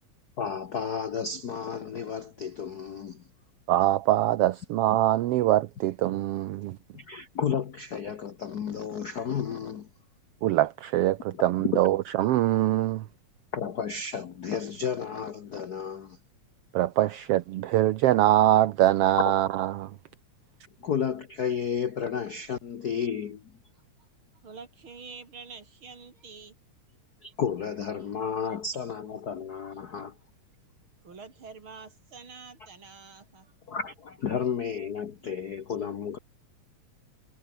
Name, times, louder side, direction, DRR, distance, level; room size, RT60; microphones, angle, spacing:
voice 1, 0.4-3.2 6.9-9.9 13.5-16.2 19.3-19.4 20.8-23.5 27.2-30.1 33.7-36.2, left 7 dB, 90° left, 0.8 m, -32 dB
voice 2, 3.7-6.8 10.4-13.0 16.7-19.9, right 14 dB, 75° right, 1.4 m, -23 dB
voice 3, 24.4-26.6 26.9-27.0 28.0-28.1 28.5-28.6 29.7-29.8 31.0-33.5, right 5 dB, 45° right, 4.0 m, -47 dB
omnidirectional pair, 3.4 m